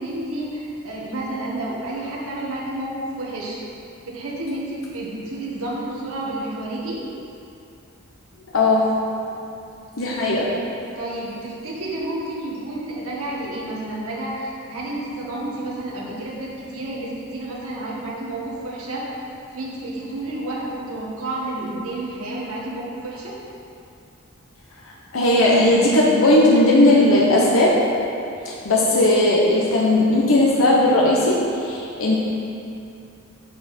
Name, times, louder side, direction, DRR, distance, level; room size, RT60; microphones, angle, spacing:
voice 1, 0.0-3.6 4.1-7.0 11.0-19.1 19.5-23.4, right 1 dB, 85° right, -5 dB, 1.8 m, -30 dB
voice 2, 8.5-9.0 10.0-10.6 24.8-27.8 28.4-32.2, left 1 dB, 75° left, -4 dB, 1.0 m, -17 dB
8.3 x 7.5 x 4.4 m, 2.6 s
head